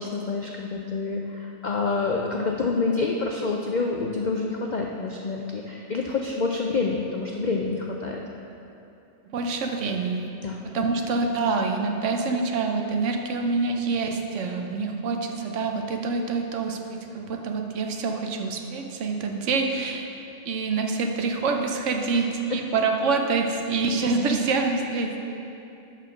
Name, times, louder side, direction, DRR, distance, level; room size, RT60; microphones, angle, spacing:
voice 1, 0.0-8.2 10.4-10.5, left 3 dB, 65° left, 0 dB, 0.4 m, -27 dB
voice 2, 9.2-10.3 10.6-20.0 20.4-25.2, right 4 dB, 70° right, 3 dB, 1.0 m, -26 dB
6.7 x 5.8 x 6.1 m, 2.8 s
omnidirectional pair, 1.4 m